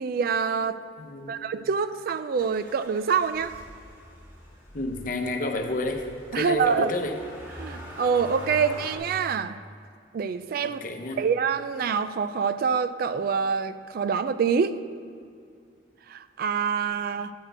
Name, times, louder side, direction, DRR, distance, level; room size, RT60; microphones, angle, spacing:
voice 1, 0.0-0.8 1.3-3.5 6.3-6.9 7.6-9.6 10.1-10.8 11.2-14.8 16.1-17.3, right 6 dB, 55° right, 13 dB, 0.3 m, -26 dB
voice 2, 1.0-1.5 4.7-7.2 10.6-11.3, left 2 dB, 50° left, 4 dB, 0.8 m, -31 dB
Motor vehicle (road), 2.4-9.0, equal, 15° right, 2.0 m, -44 dB
10.0 x 4.4 x 7.8 m, 2.3 s
head